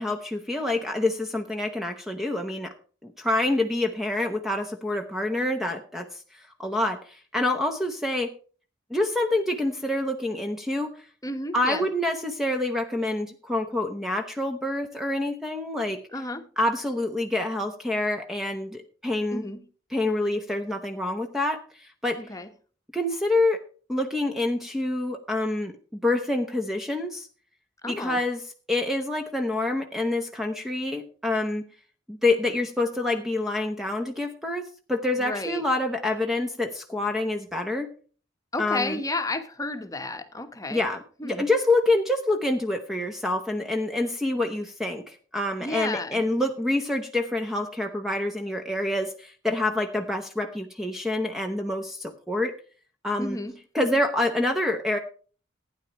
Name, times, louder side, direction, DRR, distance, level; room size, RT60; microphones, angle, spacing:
voice 1, 0.0-2.7 3.0-8.3 8.9-11.1 11.5-16.0 16.6-19.5 19.9-22.2 22.9-23.6 23.9-25.8 26.0-27.3 27.9-28.4 28.7-31.6 32.1-37.9 38.6-39.0 40.7-52.6 53.0-53.4 53.7-55.0, left 2 dB, ahead, 0.9 m, -27 dB
voice 2, 11.2-11.8 16.1-16.4 19.3-19.6 22.2-22.5 27.8-28.2 35.2-35.6 38.5-40.9 41.2-41.4 45.6-46.2 53.2-53.5, left 2 dB, 20° left, 1.2 m, -32 dB
15.5 x 9.9 x 3.0 m
head